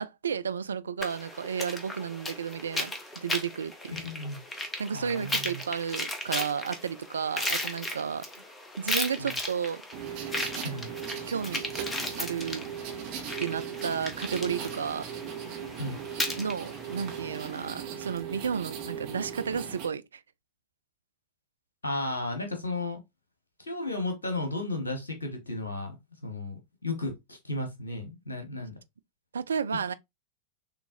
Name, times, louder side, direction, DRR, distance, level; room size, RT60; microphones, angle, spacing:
voice 1, 0.0-3.9 4.8-8.2 8.8-9.8 11.3-11.6 12.2-12.7 13.4-15.1 16.4-20.2 29.3-29.9, right 7 dB, 70° right, 0.3 m, -32 dB
sound 1, 1.0-17.7, left 1 dB, 15° left, 1.1 m, -36 dB
voice 2, 3.9-4.4 4.9-5.6 9.2-9.3 10.6-10.9 15.8-16.0 21.8-23.0 23.6-26.0 26.2-28.7, left 2 dB, 75° left, 1.2 m, -34 dB
sound 2, 9.9-19.9, right 8 dB, 45° right, 1.5 m, -38 dB
6.6 x 3.0 x 2.6 m
figure-of-eight pair, 90°, 0 cm